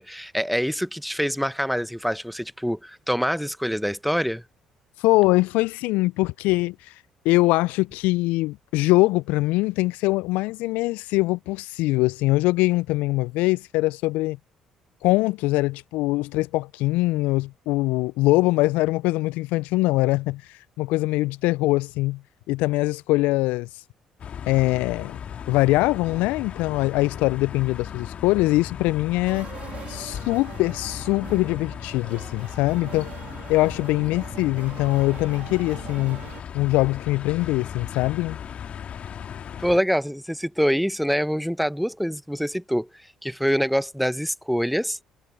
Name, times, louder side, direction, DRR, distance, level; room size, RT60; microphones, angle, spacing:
voice 1, 0.0-4.4 39.6-42.9 43.2-45.0, equal, ahead, 1.2 m, -25 dB
voice 2, 5.0-6.9 7.2-14.4 15.0-20.4 20.8-22.2 22.5-23.7 24.5-25.2 25.5-29.5 29.9-33.1 33.5-36.2 36.5-38.4, left 20 dB, 70° left, 0.6 m, -22 dB
sound 1, 24.2-39.8, left 8 dB, 50° left, 2.2 m, -37 dB
sound 2, 29.3-36.4, right 9 dB, 55° right, 3.4 m, -42 dB
hypercardioid pair, 50°, 3 cm